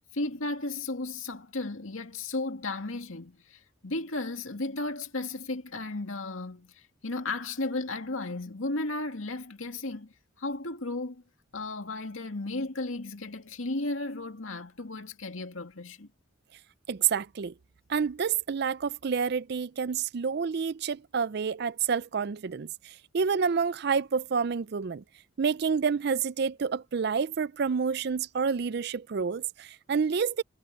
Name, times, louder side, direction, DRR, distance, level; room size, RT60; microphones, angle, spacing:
voice 1, 0.1-10.1 10.4-11.2 11.5-16.1, left 2 dB, 85° left, 2.3 m, -34 dB
voice 2, 16.9-17.5 17.9-25.0 25.4-30.4, right 6 dB, 50° right, 0.4 m, -28 dB
head